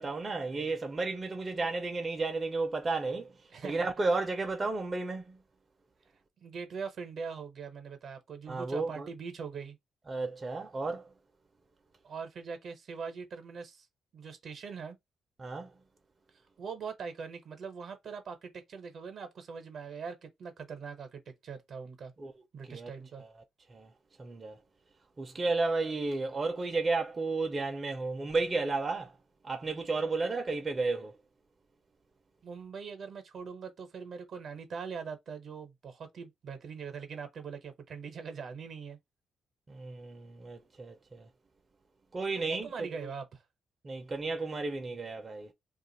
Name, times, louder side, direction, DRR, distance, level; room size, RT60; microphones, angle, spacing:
voice 1, 0.0-3.3 3.6-5.4 8.5-9.1 10.1-11.1 15.4-15.7 22.2-22.3 22.7-22.9 23.2-23.3 23.7-23.9 24.2-24.6 25.2-29.1 29.4-31.1 39.7-41.3 42.1-43.1 43.8-45.5, right 3 dB, 35° right, 0.6 m, -33 dB
voice 2, 3.5-3.9 6.4-9.8 12.0-13.9 14.1-15.0 16.6-22.1 22.5-23.2 32.4-39.0 42.4-43.4, right 5 dB, 65° right, 0.9 m, -42 dB
2.5 x 2.4 x 3.9 m
cardioid pair, 70°, 0 cm